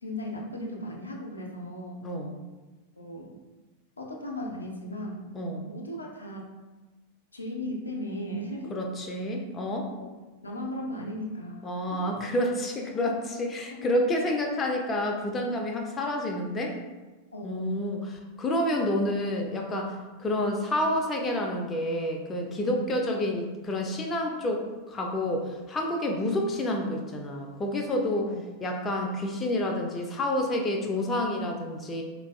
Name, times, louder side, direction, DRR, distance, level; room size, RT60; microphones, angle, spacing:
voice 1, 0.0-2.0 3.0-3.3 4.0-5.3 5.6-6.5 7.3-8.7 10.0-10.2 10.4-12.2 17.3-17.8 22.6-22.9 28.3-28.5, left 1 dB, 80° left, -1 dB, 0.4 m, -37 dB
voice 2, 8.7-9.9 11.6-16.8 17.4-18.1 18.4-19.9 20.2-28.3 28.6-32.0, left 1 dB, 20° left, 2 dB, 0.4 m, -29 dB
3.8 x 2.3 x 2.2 m, 1.2 s
figure-of-eight pair, 90°, 0 cm